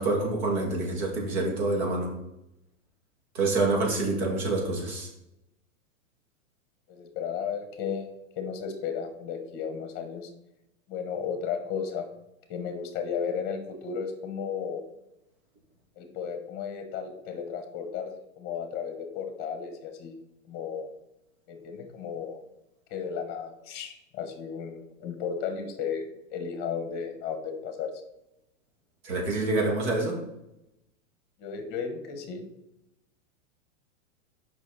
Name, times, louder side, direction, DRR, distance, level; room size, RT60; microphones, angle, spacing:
voice 1, 0.0-2.1 3.3-5.1 29.0-30.2, right 2 dB, 55° right, 0 dB, 2.4 m, -27 dB
voice 2, 6.9-10.3 10.9-12.1 12.5-14.8 16.0-20.1 20.4-20.9 21.5-22.4 22.9-27.9 31.4-32.5, left 6 dB, 25° left, 6 dB, 1.3 m, -34 dB
6.3 x 5.7 x 4.1 m, 0.86 s
hypercardioid pair, 145°, 40 cm